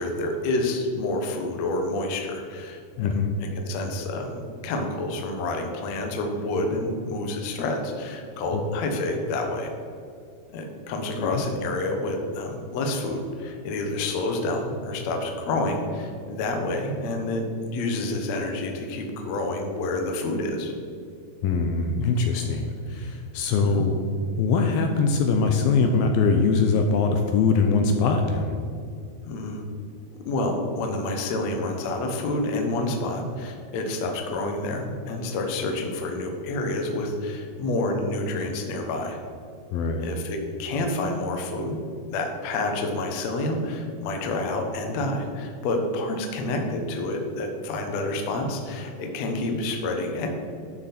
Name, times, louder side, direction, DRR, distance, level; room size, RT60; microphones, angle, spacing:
voice 1, 0.0-3.1 3.4-9.7 10.5-20.7 23.6-23.9 29.3-29.6 30.3-39.2 40.0-41.8 42.1-50.3, left 2 dB, 65° left, 3 dB, 1.8 m, -28 dB
voice 2, 3.0-3.3 8.5-8.6 11.2-11.4 21.4-24.0 24.4-28.6 39.7-40.1, left 4 dB, 80° left, 4 dB, 2.4 m, -22 dB
12.0 x 6.7 x 4.2 m, 2.4 s
omnidirectional pair, 4.5 m